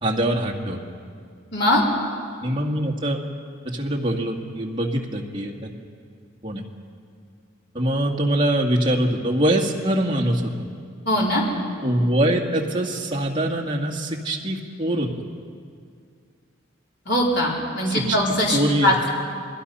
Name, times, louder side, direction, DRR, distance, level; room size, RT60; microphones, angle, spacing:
voice 1, 0.0-0.8 2.4-3.2 3.7-5.7 6.4-6.6 7.7-10.5 11.8-15.1 17.9-18.2 18.5-19.1, right 1 dB, 25° right, -1 dB, 2.1 m, -23 dB
voice 2, 1.5-1.8 11.1-11.4 17.1-19.1, left 1 dB, 60° left, -3 dB, 4.6 m, -21 dB
29.5 x 21.0 x 5.6 m, 2.3 s
head